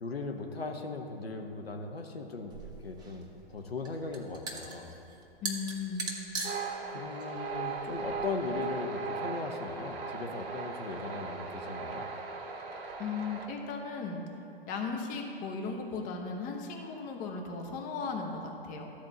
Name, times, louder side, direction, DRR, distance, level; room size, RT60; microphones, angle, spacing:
voice 1, 0.0-5.0 6.9-12.1, left 3 dB, 85° left, 3 dB, 0.9 m, -38 dB
sound 1, 2.5-8.7, right 3 dB, 15° right, 1.1 m, -41 dB
voice 2, 5.4-6.1 13.0-14.2 14.7-18.9, left 4 dB, 30° left, 2 dB, 1.2 m, -36 dB
sound 2, 6.4-13.5, right 4 dB, 30° right, 1.3 m, -38 dB
12.5 x 4.4 x 7.1 m, 2.8 s
figure-of-eight pair, 115°, 29 cm